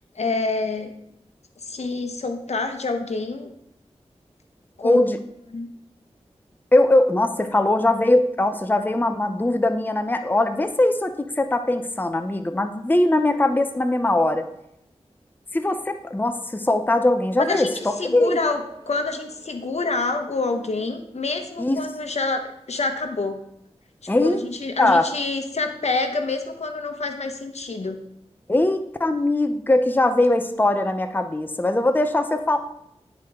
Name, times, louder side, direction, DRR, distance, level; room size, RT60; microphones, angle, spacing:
voice 1, 0.1-0.9 1.6-3.5 4.8-5.0 5.5-5.7 17.4-17.7 18.0-23.4 24.0-28.0, left 3 dB, 75° left, 6 dB, 0.9 m, -27 dB
voice 2, 4.8-5.2 6.7-14.5 15.5-18.4 21.6-21.8 24.1-24.4 24.8-25.1 28.5-32.6, left 1 dB, 15° left, 8 dB, 0.6 m, -21 dB
sound 1, 17.3-22.5, right 2 dB, 30° right, 2.5 m, -49 dB
10.5 x 4.5 x 3.6 m, 0.78 s
wide cardioid pair, 50°, 11 cm